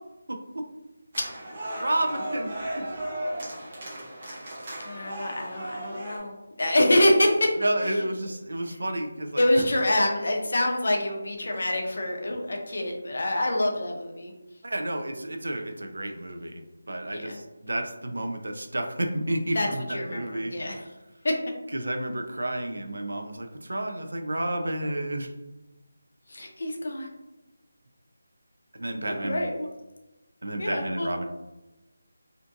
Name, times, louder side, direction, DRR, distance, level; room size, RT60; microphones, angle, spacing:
voice 1, 0.3-0.6 1.8-2.8 7.6-9.7 14.6-16.6 16.9-20.8 21.7-25.3 28.7-29.4 30.4-31.3, right 1 dB, 85° right, 5 dB, 0.4 m, -31 dB
sound 1, 1.1-6.2, right 1 dB, 25° right, 0.5 m, -36 dB
voice 2, 4.8-7.6 7.8-8.0 8.7-8.8 9.4-14.3 17.0-17.4 19.5-20.8 21.2-21.4 26.3-27.1 29.1-29.7 30.6-31.1, left 1 dB, 45° left, 1 dB, 0.5 m, -26 dB
2.5 x 2.5 x 2.4 m, 1.0 s
figure-of-eight pair, 180°, 0 cm